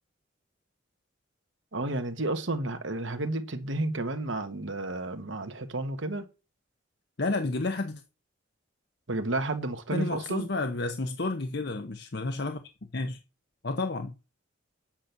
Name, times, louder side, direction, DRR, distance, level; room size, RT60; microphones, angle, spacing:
voice 1, 1.7-6.3 9.1-10.5, right 2 dB, 70° right, 1.4 m, -31 dB
voice 2, 7.2-8.0 9.9-12.6 12.9-13.2 13.6-14.1, left 2 dB, 55° left, 0.8 m, -30 dB
8.8 x 6.0 x 6.7 m
head